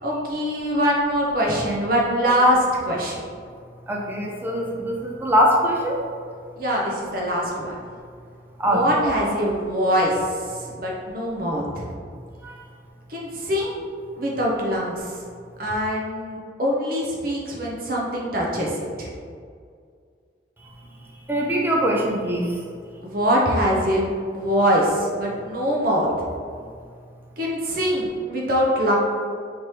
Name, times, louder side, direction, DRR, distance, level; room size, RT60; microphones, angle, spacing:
voice 1, 0.0-3.2 6.6-7.7 8.7-11.9 13.1-13.7 14.2-15.2 15.6-19.1 23.0-26.1 27.4-29.0, equal, 50° right, -3 dB, 0.7 m, -23 dB
voice 2, 3.9-6.0 8.6-8.9 12.4-12.6 21.3-22.6, equal, 10° right, -1 dB, 0.4 m, -22 dB
3.5 x 2.9 x 3.1 m, 2.1 s
head